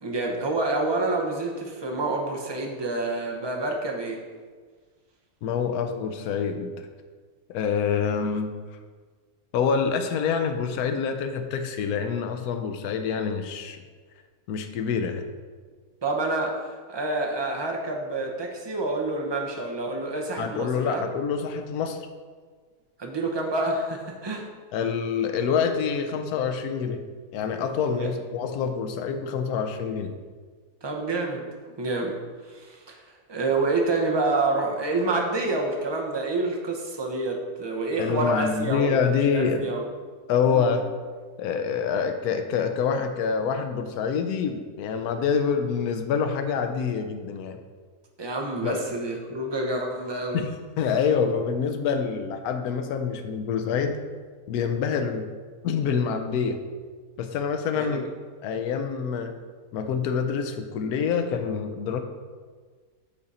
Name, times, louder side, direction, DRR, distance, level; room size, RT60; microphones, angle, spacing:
voice 1, 0.0-4.2 16.0-16.6 16.9-21.0 23.0-24.5 27.9-28.1 30.8-31.4 31.8-32.2 32.5-33.0 33.3-39.0 39.3-39.8 40.5-40.7 48.2-50.4 57.7-58.0, right 2 dB, 25° right, 1 dB, 0.6 m, -28 dB
voice 2, 5.4-6.9 7.5-8.5 9.5-13.8 14.5-15.3 20.4-22.0 24.7-27.0 27.3-30.2 38.0-39.7 40.3-40.9 41.4-47.6 48.6-48.8 50.3-54.0 54.5-55.3 55.6-56.6 57.2-58.0 58.4-59.3 59.7-62.0, left 6 dB, 80° left, 7 dB, 1.1 m, -26 dB
8.8 x 3.8 x 4.1 m, 1.5 s
omnidirectional pair, 1.6 m